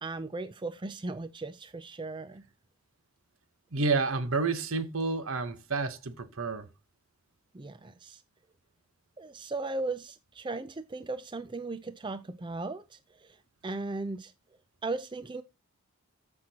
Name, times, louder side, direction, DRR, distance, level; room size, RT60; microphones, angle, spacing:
voice 1, 0.0-2.4 7.5-8.2 9.2-13.4 13.6-14.3 14.8-15.4, right 3 dB, 20° right, 0.4 m, -37 dB
voice 2, 3.7-6.7, right 3 dB, 70° right, 1.1 m, -30 dB
13.5 x 6.1 x 2.9 m
head